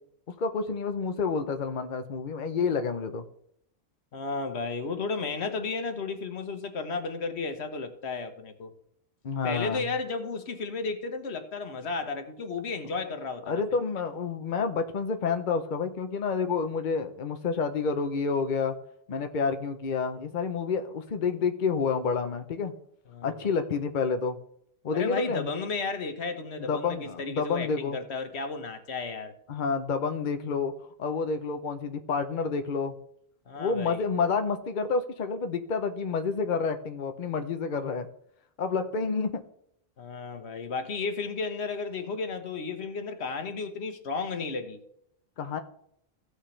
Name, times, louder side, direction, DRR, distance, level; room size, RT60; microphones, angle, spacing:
voice 1, 0.4-3.3 9.2-9.9 13.5-18.8 19.1-22.7 23.2-24.4 24.8-25.5 26.6-28.0 29.5-30.7 31.0-33.0 33.6-38.1 38.6-39.4 45.4-45.6, left 5 dB, 50° left, 0.9 m, -29 dB
voice 2, 4.1-8.7 9.4-13.6 23.1-23.5 24.9-29.3 33.5-34.0 40.0-44.8, left 4 dB, 85° left, 1.4 m, -33 dB
15.5 x 6.4 x 3.3 m
omnidirectional pair, 1.1 m